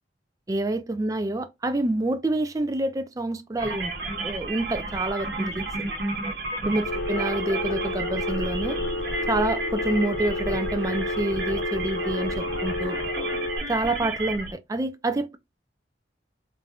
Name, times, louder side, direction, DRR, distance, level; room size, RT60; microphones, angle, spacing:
voice 1, 0.5-3.9 4.2-5.6 6.6-8.8 9.3-13.0 13.7-15.4, right 2 dB, 20° right, 0.3 m, -27 dB
sound 1, 3.6-14.5, right 2 dB, 65° right, 1.1 m, -32 dB
Telephone, 6.8-13.6, left 2 dB, 75° left, 0.6 m, -30 dB
3.3 x 2.5 x 2.2 m
head